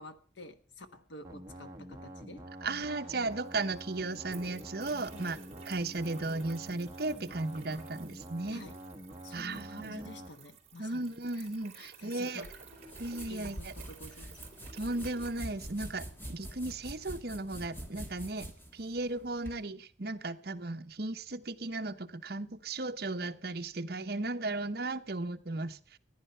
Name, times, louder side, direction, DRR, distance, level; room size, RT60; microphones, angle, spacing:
voice 1, 0.0-2.4 5.1-5.3 8.5-8.8 9.2-11.5 11.7-12.5 13.3-14.5, left 2 dB, 75° left, 9 dB, 1.3 m, -50 dB
sound 1, 1.2-10.3, right 1 dB, 15° right, 1.6 m, -47 dB
voice 2, 2.6-5.4 5.7-8.6 9.3-10.1 10.8-12.4 13.0-13.7 14.7-18.5 18.7-26.0, right 2 dB, 55° right, 6 dB, 0.9 m, -36 dB
sound 2, 3.3-16.1, right 5 dB, 35° right, 3.5 m, -54 dB
sound 3, 12.4-19.6, right 1 dB, 10° left, 1.7 m, -45 dB
14.5 x 10.5 x 5.6 m, 0.44 s
head